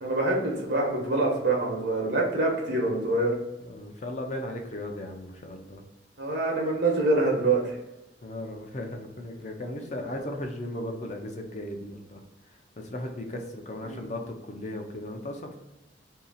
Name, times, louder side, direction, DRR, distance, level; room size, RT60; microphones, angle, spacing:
voice 1, 0.0-3.3 6.2-7.7 13.9-14.1, right 2 dB, 70° right, -1 dB, 1.0 m, -25 dB
voice 2, 3.6-5.8 8.2-12.2 12.8-15.6, left 1 dB, 40° left, 3 dB, 0.6 m, -36 dB
2.8 x 2.8 x 4.1 m, 0.95 s
head